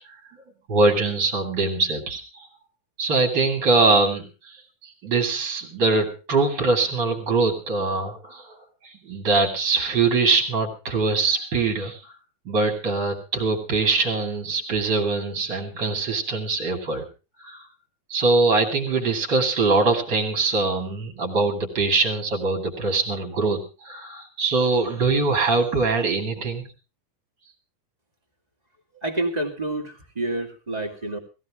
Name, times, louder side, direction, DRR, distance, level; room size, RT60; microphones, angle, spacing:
voice 1, 0.7-2.5 3.0-4.6 4.8-8.6 8.8-12.0 12.4-17.0 17.4-17.6 18.1-26.6, right 3 dB, 35° right, 3 dB, 2.8 m, -23 dB
voice 2, 29.0-31.2, right 2 dB, 15° right, 2 dB, 1.8 m, -28 dB
18.0 x 15.5 x 3.6 m, 0.32 s
omnidirectional pair, 3.9 m